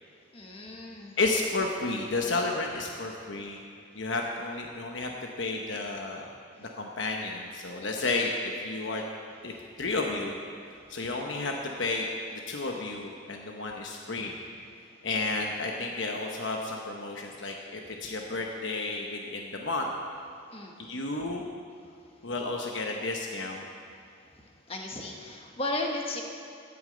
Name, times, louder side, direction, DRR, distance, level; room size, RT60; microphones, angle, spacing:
voice 1, 0.3-1.1 20.5-20.8 24.4-26.2, left 2 dB, 30° left, 1 dB, 1.2 m, -35 dB
voice 2, 1.2-3.6 3.9-6.3 6.6-9.0 9.4-9.5 9.8-10.3 10.9-14.3 15.0-19.9 20.8-21.4 22.2-23.6, left 3 dB, 80° left, 1 dB, 1.0 m, -32 dB
9.6 x 8.9 x 7.7 m, 2.3 s
head